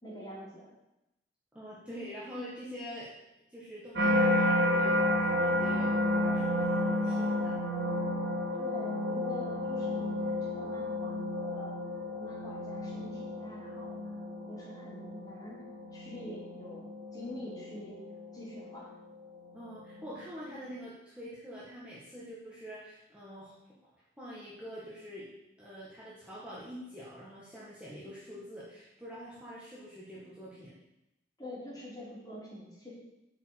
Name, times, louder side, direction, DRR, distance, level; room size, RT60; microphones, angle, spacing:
voice 1, 0.0-0.7 8.6-11.7 12.1-14.2 14.5-15.6 15.9-18.0 18.3-18.9 31.4-32.9, left 1 dB, 20° left, -6 dB, 3.2 m, -45 dB
voice 2, 1.5-3.1 3.5-7.6 19.5-23.9 24.2-25.2 25.6-30.7, equal, 5° right, -8 dB, 1.7 m, -45 dB
sound 1, 3.9-19.1 19.7-20.1, left 1 dB, 85° right, 2.4 m, -31 dB
8.3 x 5.5 x 7.7 m, 0.90 s
head